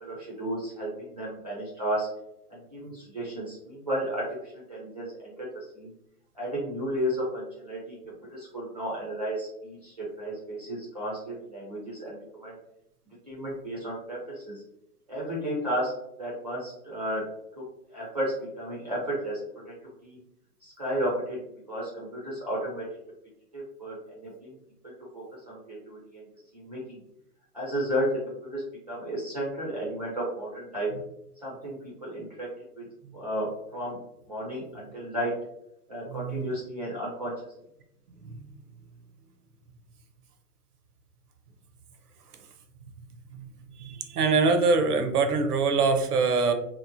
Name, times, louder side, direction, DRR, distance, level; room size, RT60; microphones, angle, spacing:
voice 1, 0.0-2.1 2.5-4.2 4.7-5.5 5.7-5.9 6.4-8.0 8.3-12.5 13.3-14.6 15.1-15.9 16.2-17.2 17.9-19.4 20.0-20.2 20.6-21.4 21.7-22.8 23.5-24.0 24.2-24.5 25.1-26.2 26.5-27.0 27.5-28.6 28.9-30.9 31.4-32.5 32.8-32.9 33.1-33.5 33.7-34.0 34.3-35.3 35.9-37.3, equal, 30° right, -6 dB, 0.4 m, -33 dB
voice 2, 36.1-36.6 38.1-38.4 43.3-43.5 43.8-46.5, right 4 dB, 75° right, 7 dB, 0.6 m, -24 dB
2.8 x 2.0 x 2.5 m, 0.83 s
hypercardioid pair, 140°, 46 cm